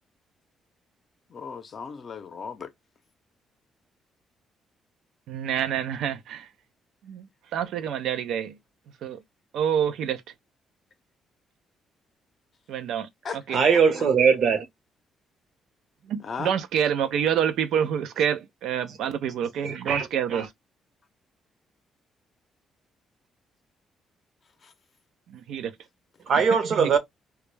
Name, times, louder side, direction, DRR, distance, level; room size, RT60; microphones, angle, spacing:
voice 1, 1.3-2.7 13.2-14.1 16.2-16.5 24.6-24.7, left 5 dB, 50° left, 0.6 m, -37 dB
voice 2, 5.3-6.5 7.0-7.3 7.5-8.5 9.0-9.2 9.5-10.2 12.7-13.1 13.5-13.6 16.1-20.5 25.3-25.7 26.8-26.9, right 8 dB, 80° right, 0.4 m, -27 dB
voice 3, 13.5-14.6 19.6-20.5 26.3-27.0, right 6 dB, 60° right, 0.8 m, -21 dB
2.2 x 2.1 x 3.0 m
cardioid pair, 90°, 0 cm